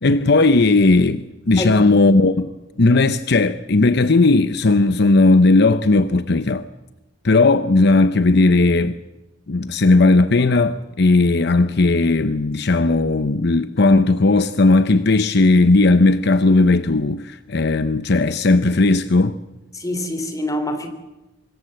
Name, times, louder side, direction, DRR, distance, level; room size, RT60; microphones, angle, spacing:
voice 1, 0.0-2.5 2.8-6.6 7.2-9.0 9.5-19.4, left 3 dB, 60° left, 0.8 m, -16 dB
voice 2, 19.7-20.9, left 1 dB, 20° left, 3.1 m, -25 dB
25.5 x 21.0 x 7.6 m
head